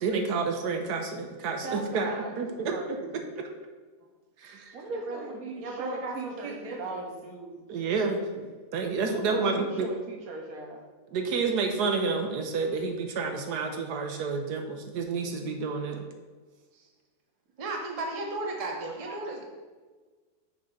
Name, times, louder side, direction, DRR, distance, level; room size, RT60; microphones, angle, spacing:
voice 1, 0.0-3.5 4.4-4.7 7.7-8.4 8.7-9.9 11.1-16.1, right 4 dB, 80° right, 4 dB, 1.2 m, -30 dB
voice 2, 1.6-3.3 4.7-7.6 9.1-10.8, right 3 dB, 60° right, 2 dB, 1.3 m, -39 dB
voice 3, 4.9-5.3 5.6-7.1 16.7-16.9 17.6-19.4, right 2 dB, 30° right, 0 dB, 0.8 m, -35 dB
6.5 x 3.5 x 5.3 m, 1.4 s
omnidirectional pair, 1.8 m